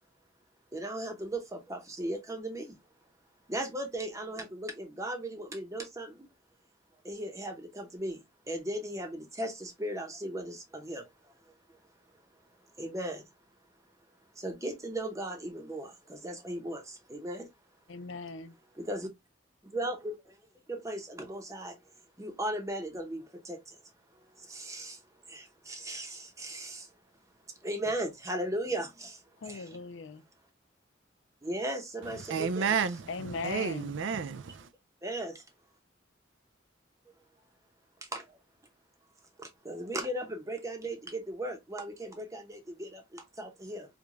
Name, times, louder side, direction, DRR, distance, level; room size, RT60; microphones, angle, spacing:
voice 1, 0.7-2.7 3.5-6.1 7.0-8.2 8.5-11.0 12.8-13.2 14.4-16.8 17.1-17.5 18.9-19.1 19.7-20.1 20.7-21.7 22.2-23.6 24.5-25.0 25.3-26.8 27.6-29.1 29.5-29.6 31.4-32.8 35.0-35.3 38.1-38.2 39.6-43.9, right 1 dB, 15° right, 0.8 m, -36 dB
voice 2, 17.9-18.6 29.4-30.2 33.1-34.0, left 4 dB, 80° left, 0.5 m, -39 dB
voice 3, 32.2-33.1 33.4-34.7, right 6 dB, 80° right, 0.4 m, -31 dB
4.7 x 2.3 x 2.4 m
head